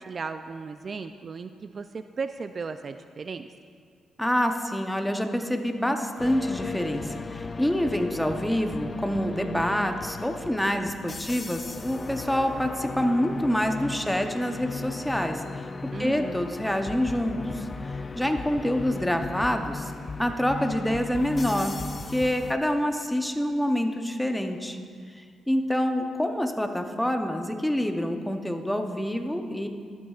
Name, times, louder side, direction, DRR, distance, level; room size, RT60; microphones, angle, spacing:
voice 1, 0.0-3.5 15.9-16.5, right 5 dB, 40° right, 9 dB, 0.3 m, -36 dB
voice 2, 4.2-15.7 16.0-19.9 20.2-21.8 22.1-24.8 25.1-29.7, equal, 5° left, 5 dB, 0.7 m, -27 dB
sound 1, 6.2-22.5, left 4 dB, 30° left, 0.4 m, -37 dB
13.0 x 11.5 x 2.4 m, 2.1 s
cardioid pair, 105°, 0 cm